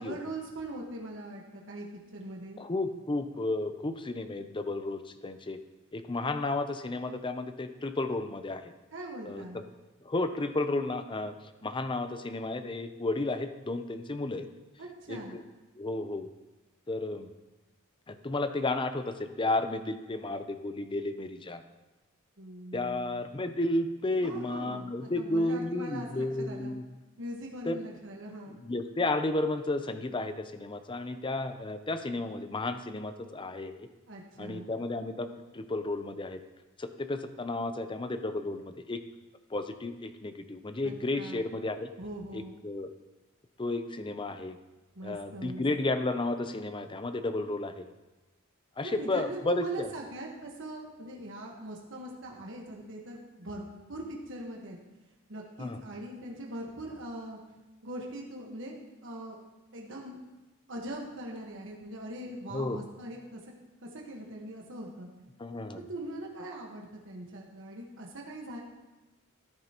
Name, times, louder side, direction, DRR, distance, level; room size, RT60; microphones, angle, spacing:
voice 1, 0.0-1.9 2.1-2.6 8.9-9.6 14.8-15.4 22.4-23.2 24.2-26.7 27.2-28.6 34.1-34.7 40.8-41.4 42.0-42.6 44.9-45.6 48.8-54.8 55.3-57.4 57.8-59.4 59.7-60.2 60.7-63.4 63.8-65.1 65.7-68.6, right 1 dB, 60° right, -1 dB, 1.4 m, -41 dB
voice 2, 2.6-5.6 5.9-8.7 9.2-9.6 10.0-11.3 11.6-14.5 15.1-15.4 15.8-16.3 16.9-17.3 18.1-21.6 22.7-26.8 27.7-27.8 28.6-33.9 34.4-36.4 36.8-39.0 39.5-41.9 42.3-42.9 43.6-44.6 45.0-47.9 48.8-49.9 55.6-55.8 62.5-62.8 65.4-65.8, left 2 dB, 25° left, 9 dB, 0.6 m, -32 dB
13.0 x 9.7 x 3.0 m, 1.1 s
head